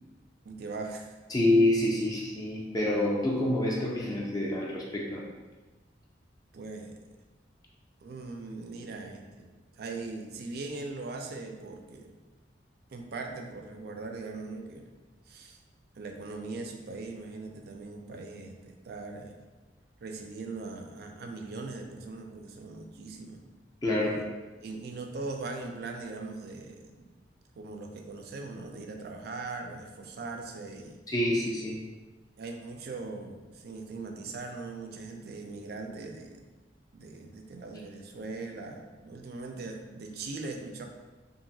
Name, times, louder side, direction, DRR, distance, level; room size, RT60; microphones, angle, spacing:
voice 1, 0.5-1.2 6.5-7.2 8.0-12.1 12.9-14.9 15.3-15.6 16.0-19.4 20.0-23.4 24.0-24.2 24.6-27.1 27.6-31.0 32.4-36.5 36.9-40.9, right 3 dB, 60° right, 3 dB, 0.4 m, -40 dB
voice 2, 1.3-5.2 23.8-24.2 31.1-31.8, left 1 dB, 20° left, -3 dB, 0.3 m, -27 dB
2.8 x 2.5 x 2.6 m, 1.2 s
head